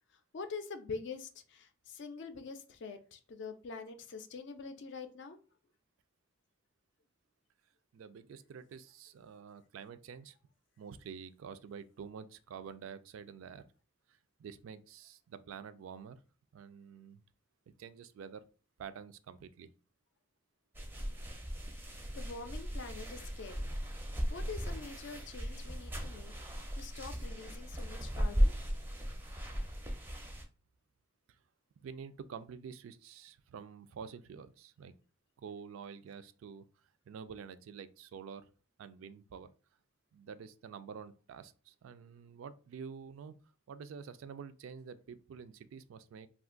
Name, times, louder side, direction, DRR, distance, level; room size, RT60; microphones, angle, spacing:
voice 1, 0.3-5.4 21.7-23.7 24.3-26.3 26.7-28.5, left 4 dB, 60° left, 0.4 m, -45 dB
voice 2, 7.9-10.4 10.8-13.6 14.4-16.2 16.5-17.2 17.8-18.4 18.8-19.7 31.8-35.0 35.4-36.7 37.1-38.4 38.8-39.5 40.1-43.3 43.7-46.3, right 6 dB, 75° right, 0.3 m, -48 dB
sound 1, 20.7-30.4, equal, 10° right, 0.4 m, -36 dB
2.5 x 2.4 x 3.7 m
head